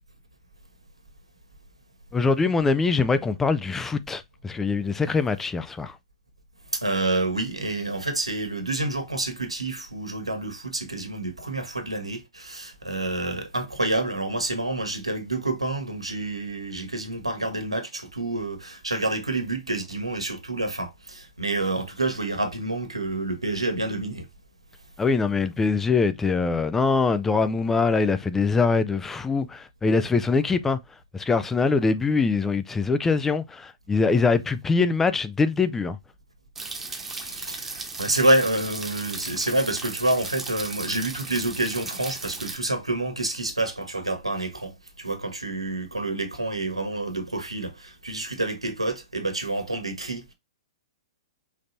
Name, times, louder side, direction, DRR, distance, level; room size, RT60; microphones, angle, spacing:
voice 1, 2.1-6.0 25.0-30.8 31.1-36.0, left 4 dB, 10° left, 0.4 m, -23 dB
voice 2, 6.7-24.3 36.9-50.3, right 2 dB, 85° right, 1.5 m, -28 dB
sound 1, 36.6-42.6, right 3 dB, 10° right, 1.1 m, -36 dB
5.2 x 3.9 x 2.6 m
figure-of-eight pair, 115°, 3 cm